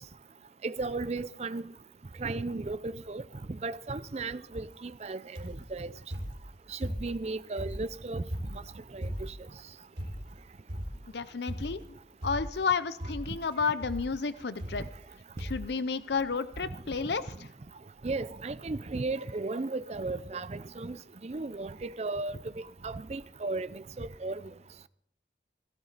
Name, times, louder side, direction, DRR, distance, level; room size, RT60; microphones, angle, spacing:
voice 1, 0.6-1.6 2.2-3.2 3.6-5.9 6.7-8.2 8.5-8.6 8.9-9.3 18.0-22.4 22.8-24.4, right 3 dB, 35° right, 0.5 m, -35 dB
sound 1, 5.4-5.7 6.1-7.2 7.6-9.5 10.0-10.4 10.7-11.1 11.5-11.9 12.2-12.7 13.0-13.4 13.8-14.1 14.6-15.1 15.4-15.7 16.5-16.6 16.8-16.9, equal, 70° right, 3.7 m, -38 dB
voice 2, 11.1-14.8 15.4-17.5, left 5 dB, 65° left, 0.6 m, -32 dB
16.5 x 15.0 x 4.1 m
head